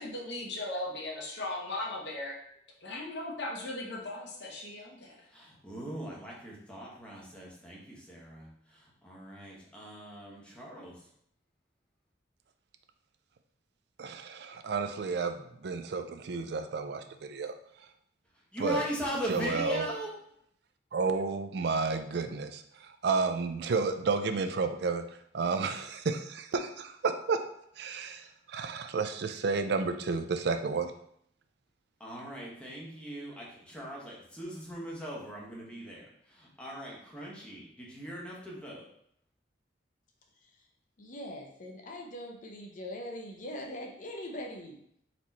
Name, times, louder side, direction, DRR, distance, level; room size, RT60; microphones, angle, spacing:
voice 1, 0.0-2.4 2.8-5.2, left 2 dB, 70° left, 0 dB, 1.0 m, -37 dB
voice 2, 5.3-11.1 18.5-20.1 32.0-38.9, equal, 5° left, -4 dB, 1.2 m, -40 dB
voice 3, 14.0-17.5 18.6-18.8 19.3-19.9 20.9-25.0 25.3-27.4 27.8-30.9, right 4 dB, 65° right, 8 dB, 0.4 m, -31 dB
voice 4, 41.0-44.8, left 1 dB, 45° left, 1 dB, 0.6 m, -41 dB
4.3 x 3.0 x 4.1 m, 0.69 s
head